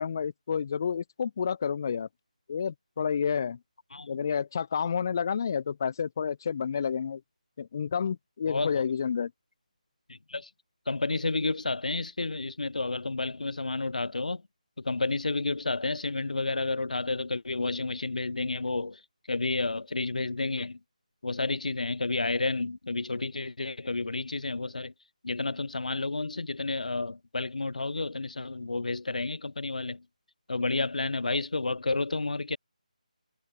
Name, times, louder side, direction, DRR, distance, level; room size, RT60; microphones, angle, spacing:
voice 1, 0.0-2.1 2.5-3.6 4.1-7.2 7.6-9.3, left 7 dB, 25° left, 3.9 m, -30 dB
voice 2, 3.9-4.2 8.5-8.8 10.1-10.5 10.9-14.4 14.8-19.0 19.3-20.8 21.2-24.9 25.2-30.1 30.5-32.6, left 3 dB, 70° left, 5.1 m, -31 dB
figure-of-eight pair, 175°, 4 cm